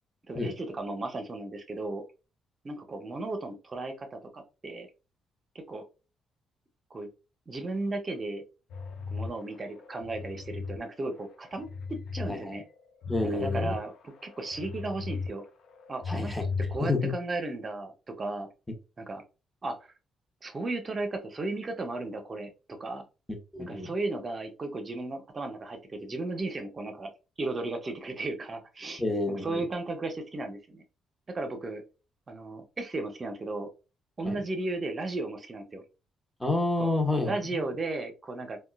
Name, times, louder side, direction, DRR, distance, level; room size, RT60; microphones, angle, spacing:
voice 1, 0.2-2.0 2.6-4.9 5.5-5.8 6.9-7.1 7.5-8.4 9.1-12.6 13.2-15.4 15.9-18.5 19.0-19.2 19.6-19.8 20.4-22.5 22.8-23.0 23.7-27.1 27.4-29.0 29.3-30.8 31.3-31.8 32.3-33.7 34.2-35.8 36.8-36.9 37.2-38.6, right 2 dB, 35° right, 5 dB, 0.8 m, -35 dB
sound 1, 8.7-10.8 11.2-12.3 12.7-15.3 15.6-17.1, left 4 dB, 70° left, 0.6 m, -36 dB
voice 2, 13.1-13.8 16.1-16.4 16.8-17.1 23.3-23.9 29.0-29.6 34.3-34.4 36.4-37.6, left 2 dB, 5° left, 3 dB, 0.9 m, -29 dB
3.6 x 2.3 x 2.3 m, 0.31 s
cardioid pair, 90°, 0 cm